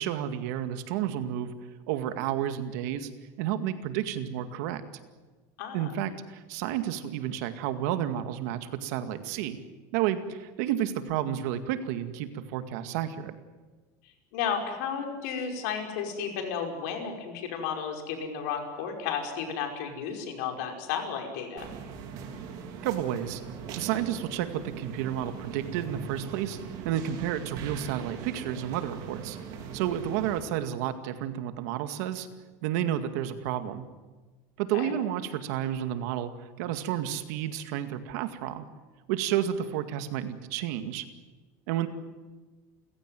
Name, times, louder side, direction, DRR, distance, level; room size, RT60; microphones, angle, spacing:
voice 1, 0.0-1.5 1.9-3.1 3.4-4.8 5.7-9.6 9.9-13.4 22.8-23.4 23.8-26.6 26.8-29.4 29.7-32.3 32.6-33.8 34.6-38.7 39.1-41.1 41.7-41.9, right 11 dB, 65° right, 9 dB, 2.1 m, -31 dB
voice 2, 5.6-5.9 14.3-21.7 34.7-34.9, left 7 dB, 70° left, 4 dB, 5.4 m, -33 dB
sound 1, 21.6-30.4, right 6 dB, 45° right, 3.9 m, -41 dB
29.5 x 16.5 x 9.3 m, 1.3 s
cardioid pair, 180°, 9 cm